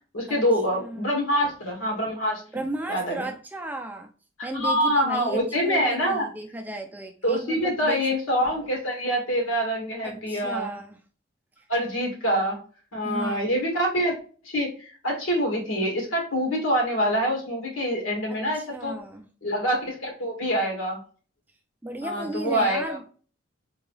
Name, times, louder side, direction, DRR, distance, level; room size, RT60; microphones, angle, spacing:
voice 1, 0.1-2.4 2.9-3.3 4.4-6.3 7.2-10.7 11.7-12.6 12.9-14.2 14.4-18.9 19.4-21.0 22.0-23.0, equal, 85° left, 1.7 m, -25 dB
voice 2, 0.7-1.1 2.5-4.1 4.4-8.1 10.0-11.0 13.0-13.4 18.3-19.3 21.8-23.1, right 2 dB, 10° right, 0.3 m, -35 dB
3.8 x 2.7 x 3.1 m
head